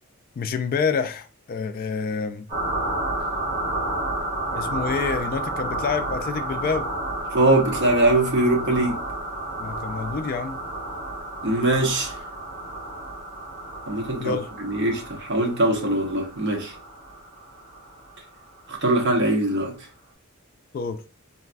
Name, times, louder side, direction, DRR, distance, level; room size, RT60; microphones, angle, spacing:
voice 1, 0.4-2.5 4.5-6.9 9.6-10.6 14.2-14.5 20.7-21.0, left 5 dB, 45° left, 0.3 m, -28 dB
sound 1, 2.5-18.8, right 2 dB, 35° right, 1.6 m, -31 dB
voice 2, 7.3-9.0 11.4-12.1 13.9-14.4 14.6-16.7 18.7-19.7, right 1 dB, 55° right, 0.8 m, -22 dB
3.9 x 2.5 x 2.2 m
head